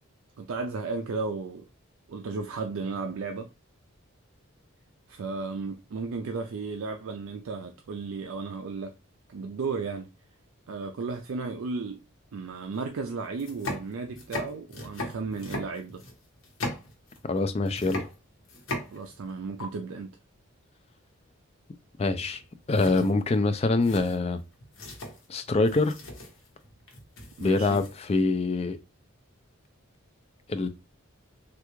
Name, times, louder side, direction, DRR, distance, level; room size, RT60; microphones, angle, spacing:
voice 1, 0.4-1.7 2.1-3.5 5.1-9.0 9.3-10.1 10.7-12.0 12.3-16.0 18.9-20.1 27.4-27.8, right 4 dB, 70° right, 0.4 m, -34 dB
sound 1, 12.7-12.8 13.3-17.4 17.7-19.3 19.6-19.7 22.2-22.4 22.7-28.2, left 2 dB, 65° left, 1.0 m, -39 dB
voice 2, 17.2-18.0 22.0-22.4 22.7-24.4 25.3-26.0 27.4-28.8 30.5-30.7, left 3 dB, 30° left, 0.3 m, -25 dB
3.3 x 2.3 x 3.0 m
head